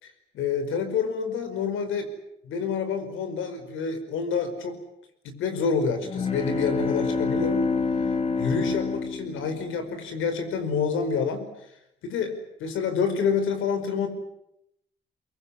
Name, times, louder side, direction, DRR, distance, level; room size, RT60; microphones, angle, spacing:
voice 1, 0.0-2.1 2.4-4.8 5.2-7.6 8.4-11.5 12.0-12.3 12.6-14.1, left 5 dB, 85° left, 9 dB, 5.1 m, -28 dB
sound 1, 6.0-10.1, left 4 dB, 30° left, 2.8 m, -27 dB
24.0 x 23.0 x 10.0 m, 0.80 s
cardioid pair, 90°, 20 cm